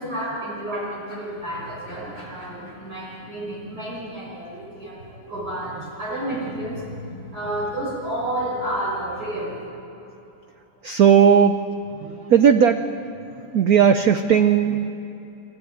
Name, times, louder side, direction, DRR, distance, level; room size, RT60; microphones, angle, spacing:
voice 1, 0.0-9.6, right 1 dB, 45° right, -7 dB, 6.3 m, -30 dB
voice 2, 10.8-11.6 12.0-12.9 13.5-14.9, right 7 dB, 70° right, 8 dB, 0.9 m, -16 dB
25.5 x 14.0 x 9.4 m, 2.9 s
omnidirectional pair, 2.4 m